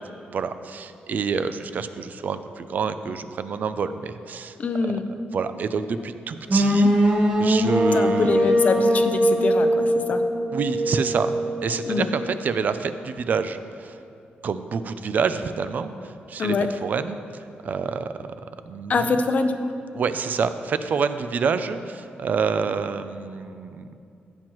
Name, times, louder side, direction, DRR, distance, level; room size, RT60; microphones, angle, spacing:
voice 1, 0.3-4.5 5.3-6.9 7.4-8.5 10.5-11.3 11.6-14.0 14.4-16.6 16.8-18.3 18.7-19.2 19.9-24.0, right 5 dB, 50° right, 11 dB, 0.4 m, -27 dB
voice 2, 4.6-5.0 7.9-10.2 11.9-12.1 16.4-16.7 18.9-19.7, left 4 dB, 45° left, 8 dB, 0.6 m, -24 dB
sound 1, 6.5-12.4, equal, 35° right, 1.4 m, -21 dB
14.5 x 7.7 x 3.0 m, 2.5 s
wide cardioid pair, 145°, 4 cm